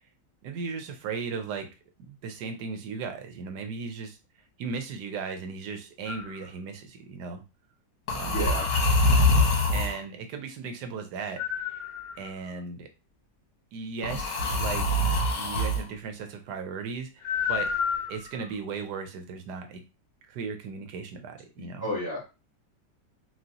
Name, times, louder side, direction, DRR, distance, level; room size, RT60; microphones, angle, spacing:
voice 1, 0.4-1.7 2.0-4.2 4.6-7.4 8.1-8.4 9.7-11.4 11.7-11.8 12.2-12.9 13.7-17.1 17.5-17.7 18.1-19.8 20.3-21.8, right 5 dB, 75° right, 6 dB, 1.4 m, -36 dB
sound 1, 6.1-6.4 8.1-10.0 11.4-12.5 14.0-15.8 17.2-18.4, left 2 dB, 80° left, 1.7 m, -25 dB
voice 2, 8.3-8.7 21.6-22.3, left 1 dB, 10° left, -6 dB, 1.1 m, -32 dB
6.1 x 2.5 x 2.9 m, 0.29 s
omnidirectional pair, 1.8 m